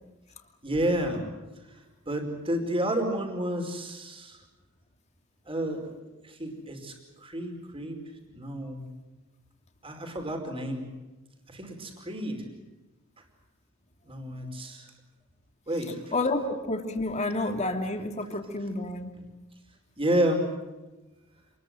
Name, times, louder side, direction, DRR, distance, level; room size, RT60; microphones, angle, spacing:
voice 1, 0.6-1.2 2.1-4.4 5.5-5.9 6.2-6.9 7.2-8.0 8.3-8.8 9.8-10.9 11.5-12.4 14.0-14.9 15.7-16.0 20.0-20.5, right 1 dB, 25° right, 4 dB, 4.9 m, -30 dB
voice 2, 16.1-19.1, left 2 dB, 35° left, 4 dB, 2.9 m, -29 dB
27.5 x 21.5 x 7.8 m, 1.1 s
head